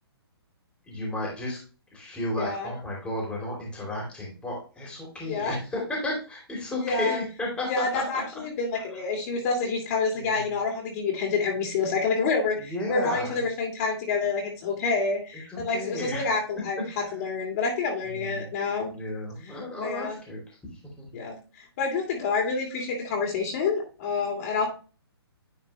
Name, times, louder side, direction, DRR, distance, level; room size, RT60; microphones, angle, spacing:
voice 1, 0.9-1.6 1.9-8.2 10.2-10.4 12.6-13.4 15.3-16.3 17.0-17.1 18.1-18.5 18.9-20.6 21.0-21.2, left 1 dB, 5° left, -3 dB, 2.9 m, -33 dB
voice 2, 2.3-2.7 5.2-5.6 6.8-7.2 7.6-16.8 17.1-18.9 19.8-20.2 21.1-24.7, left 4 dB, 40° left, -1 dB, 2.7 m, -28 dB
10.0 x 4.3 x 3.0 m, 0.34 s
hypercardioid pair, 145°, 13 cm